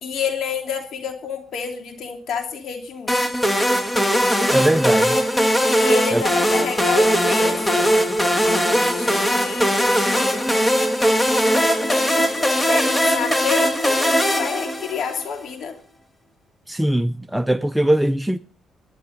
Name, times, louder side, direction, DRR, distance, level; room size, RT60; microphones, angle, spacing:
voice 1, 0.0-3.3 5.7-8.0 8.8-10.5 12.1-15.7, left 6 dB, 65° left, 2.9 m, -29 dB
sound 1, 3.1-15.3, equal, 10° left, 1.7 m, -19 dB
voice 2, 4.5-5.2 6.1-6.2 16.7-18.4, right 1 dB, 5° right, 0.6 m, -20 dB
23.5 x 11.0 x 4.0 m
cardioid pair, 90°, 0 cm